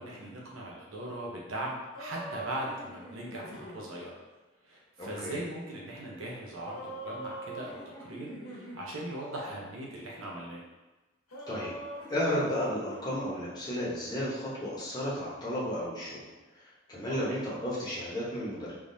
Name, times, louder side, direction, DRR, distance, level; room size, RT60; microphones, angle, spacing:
voice 1, 0.0-4.2 4.6-10.6 17.1-17.4, right 1 dB, 75° right, -3 dB, 0.8 m, -39 dB
sound 1, 1.9-3.8 6.6-8.8 11.3-13.0, right 1 dB, 85° left, 1.1 m, -43 dB
voice 2, 5.0-5.4 11.5-11.7 12.1-16.2 16.6-18.7, equal, 20° left, -7 dB, 0.9 m, -33 dB
3.6 x 3.1 x 2.6 m, 1.1 s
head